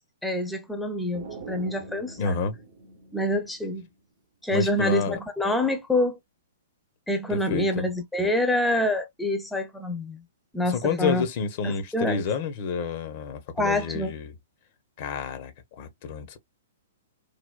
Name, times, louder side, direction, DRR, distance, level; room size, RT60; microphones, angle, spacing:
voice 1, 0.2-2.4 3.1-3.9 4.4-6.2 7.1-10.2 10.5-11.2 11.6-12.2 13.5-14.2, left 1 dB, 5° left, 0.6 m, -26 dB
sound 1, 1.1-3.9, right 3 dB, 45° right, 0.8 m, -43 dB
voice 2, 2.2-2.6 4.5-5.2 7.3-7.9 10.7-14.3 15.0-16.4, left 5 dB, 45° left, 0.7 m, -29 dB
3.4 x 2.2 x 2.2 m
figure-of-eight pair, 115°, 0 cm